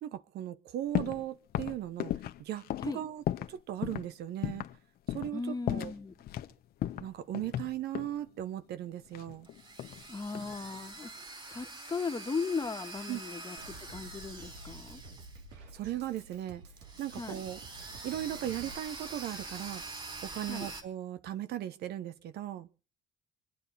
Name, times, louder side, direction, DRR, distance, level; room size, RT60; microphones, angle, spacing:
voice 1, 0.0-2.1 2.4-3.2 3.5-4.6 5.1-5.9 7.0-9.5 13.1-13.2 15.7-16.6 17.0-17.6 18.0-19.8 20.2-22.7, right 12 dB, 70° right, 1.0 m, -37 dB
sound 1, 0.9-1.2 1.5-3.6 3.8-4.1 4.4-4.8 5.1-5.4 5.7-6.5 6.8-8.2 9.1-10.0 10.3-10.8, left 12 dB, 65° left, 1.0 m, -35 dB
voice 2, 5.3-6.1 10.1-15.0 17.1-17.4 20.5-20.7, left 4 dB, 20° left, 1.7 m, -37 dB
sound 2, 9.1-15.8 16.0-16.1 16.8-20.8, right 3 dB, 30° right, 4.5 m, -45 dB
Drum kit, 13.6-18.7, right 3 dB, 85° right, 2.5 m, -50 dB
26.0 x 9.5 x 4.1 m
cardioid pair, 110°, 17 cm